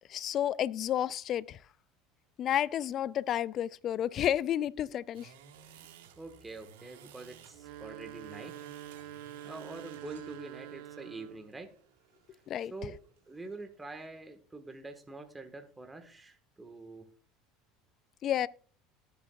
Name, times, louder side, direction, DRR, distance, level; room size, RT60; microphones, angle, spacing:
voice 1, 0.1-1.6 2.4-5.3 12.5-12.7 18.2-18.5, left 10 dB, 45° left, 0.4 m, -31 dB
sound 1, 5.1-14.3, right 8 dB, 85° right, 1.7 m, -57 dB
voice 2, 5.8-8.6 9.4-11.7 12.7-13.0 13.3-17.1, right 3 dB, 15° right, 1.4 m, -45 dB
sound 2, 7.5-11.5, right 11 dB, 65° right, 1.0 m, -46 dB
19.0 x 7.1 x 2.3 m
supercardioid pair, 100°, 0 cm